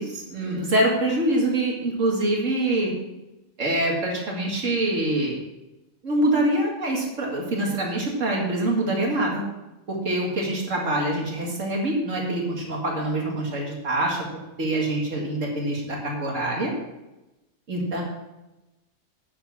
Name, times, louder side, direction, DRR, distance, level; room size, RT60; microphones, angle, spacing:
voice 1, 0.0-2.9 3.6-5.4 6.0-9.4 9.9-14.2 14.6-16.7 17.7-18.0, right 1 dB, 80° right, -2 dB, 2.4 m, -25 dB
8.7 x 7.3 x 6.0 m, 0.99 s
omnidirectional pair, 1.3 m